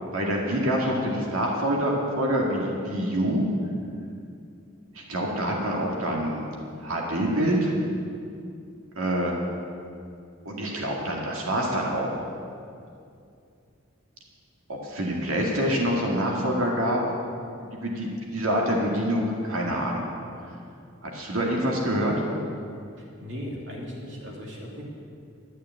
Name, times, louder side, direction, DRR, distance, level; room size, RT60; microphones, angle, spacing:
voice 1, 0.1-3.5 4.9-6.5 6.8-7.7 9.0-9.3 10.5-12.1 14.8-17.0 17.6-20.1 21.0-22.1, equal, 85° right, -1 dB, 2.1 m, -26 dB
voice 2, 23.0-24.8, equal, 60° right, -3 dB, 2.8 m, -37 dB
12.0 x 6.6 x 9.5 m, 2.5 s
head